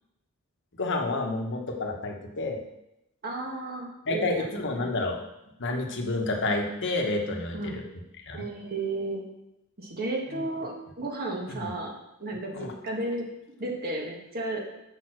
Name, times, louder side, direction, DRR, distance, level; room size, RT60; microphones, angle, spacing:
voice 1, 0.7-2.6 4.1-5.2 5.6-7.9 8.3-8.4 11.6-11.7 12.5-12.7, left 2 dB, 55° left, 2 dB, 1.2 m, -29 dB
voice 2, 3.2-4.5 4.7-4.9 7.5-7.8 8.3-9.2 9.8-11.9 12.2-13.2 13.6-14.6, right 2 dB, 45° right, 0 dB, 1.7 m, -33 dB
6.5 x 5.5 x 6.0 m, 0.86 s
head